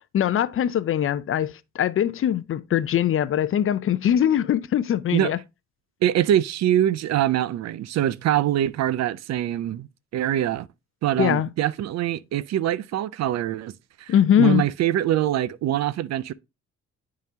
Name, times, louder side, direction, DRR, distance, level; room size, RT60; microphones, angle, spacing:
voice 1, 0.1-5.4 11.2-11.5 14.1-14.6, left 10 dB, 45° left, 0.4 m, -22 dB
voice 2, 6.0-9.9 10.1-10.7 11.0-13.7 14.0-16.3, right 12 dB, 60° right, 0.5 m, -24 dB
10.5 x 3.7 x 2.8 m
cardioid pair, 90°, 30 cm